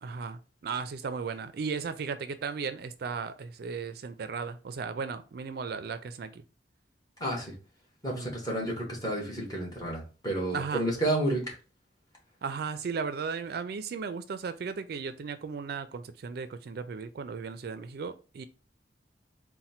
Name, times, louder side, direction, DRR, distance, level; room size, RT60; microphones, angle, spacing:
voice 1, 0.0-6.4 8.1-8.3 10.5-10.9 12.4-18.5, right 5 dB, 60° right, 0.4 m, -36 dB
voice 2, 7.2-7.5 8.0-11.5, right 1 dB, 20° left, 1.4 m, -31 dB
4.2 x 2.1 x 4.2 m
head